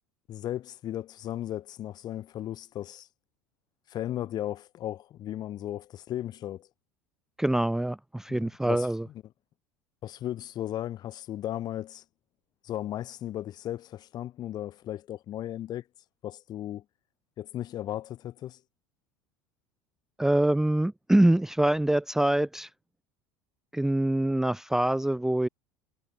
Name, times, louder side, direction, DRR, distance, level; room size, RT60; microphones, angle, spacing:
voice 1, 0.3-3.1 3.9-6.7 8.3-8.9 10.0-12.0 12.6-15.8 16.2-16.8 17.4-18.6, left 12 dB, 50° left, 6.3 m, -36 dB
voice 2, 7.4-9.1 20.2-22.7 23.7-25.5, right 1 dB, 5° right, 0.5 m, -25 dB
hypercardioid pair, 75°, 9 cm